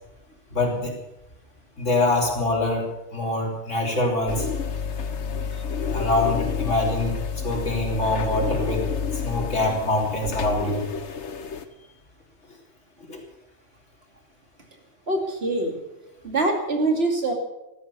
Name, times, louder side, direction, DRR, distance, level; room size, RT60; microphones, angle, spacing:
voice 1, 0.5-0.9 1.8-4.5 5.9-7.2 7.4-8.9 9.1-10.9 13.1-13.2, left 2 dB, 85° left, 0 dB, 3.6 m, -24 dB
sound 1, 4.3-11.6, left 6 dB, 70° left, 1.4 m, -29 dB
voice 2, 15.1-15.8 16.2-17.3, right 2 dB, 60° right, 3 dB, 2.9 m, -24 dB
16.0 x 12.5 x 6.9 m, 0.93 s
omnidirectional pair, 1.2 m